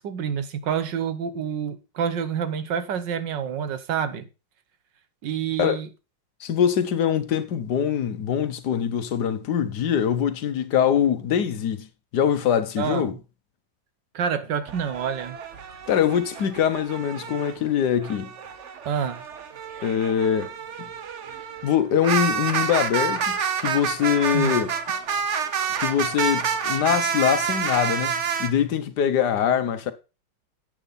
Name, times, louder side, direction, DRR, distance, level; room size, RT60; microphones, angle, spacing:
voice 1, 0.0-4.3 5.2-5.9 12.8-13.1 14.1-15.4 18.8-19.2 24.3-24.5, right 7 dB, 70° right, 1.6 m, -28 dB
voice 2, 6.4-11.9 12.1-13.2 15.9-18.3 19.8-20.5 21.6-24.7 25.8-28.1 28.4-29.9, left 8 dB, 65° left, 1.4 m, -23 dB
sound 1, 14.6-17.5 18.0-28.5, right 7 dB, 50° right, 1.0 m, -28 dB
10.5 x 8.2 x 4.1 m
omnidirectional pair, 2.0 m